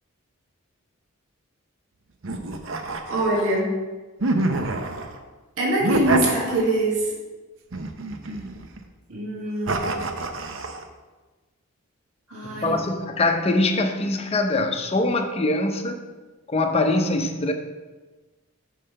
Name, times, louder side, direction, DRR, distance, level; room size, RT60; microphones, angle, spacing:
sound 1, 2.2-3.6 4.2-5.2 5.8-7.0 7.7-8.8 9.7-10.8, right 2 dB, 60° right, 0.7 m, -27 dB
voice 1, 3.1-3.7 5.6-7.1 8.3-8.4 9.1-10.0 12.3-12.8, right 2 dB, 80° right, -3 dB, 1.7 m, -24 dB
voice 2, 12.4-16.0 16.5-17.5, left 2 dB, 25° left, 5 dB, 0.6 m, -23 dB
5.5 x 5.5 x 6.6 m, 1.3 s
head